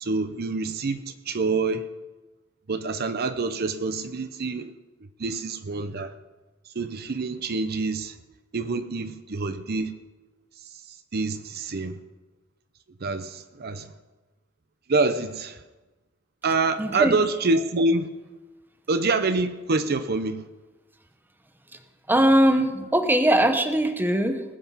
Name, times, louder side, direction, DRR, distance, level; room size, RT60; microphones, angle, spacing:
voice 1, 0.0-1.8 2.7-4.7 5.2-6.1 6.8-8.1 8.5-9.9 11.1-12.0 13.0-13.9 14.9-15.6 16.4-18.1 18.9-20.4, right 3 dB, 50° right, 10 dB, 0.6 m, -26 dB
voice 2, 16.8-17.2 22.1-24.4, right 1 dB, 10° right, 7 dB, 0.9 m, -20 dB
19.5 x 7.9 x 5.6 m, 1.1 s
head